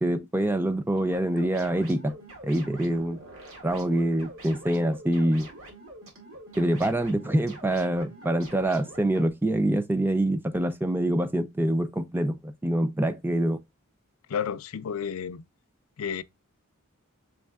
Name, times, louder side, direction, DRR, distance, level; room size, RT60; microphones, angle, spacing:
voice 1, 0.0-2.1 2.4-3.2 3.6-5.5 6.6-13.6, right 1 dB, 10° right, 0.4 m, -25 dB
sound 1, 1.0-9.3, right 1 dB, 70° right, 2.0 m, -46 dB
voice 2, 14.3-15.4 16.0-16.2, left 7 dB, 70° left, 0.4 m, -31 dB
6.4 x 3.4 x 2.2 m
head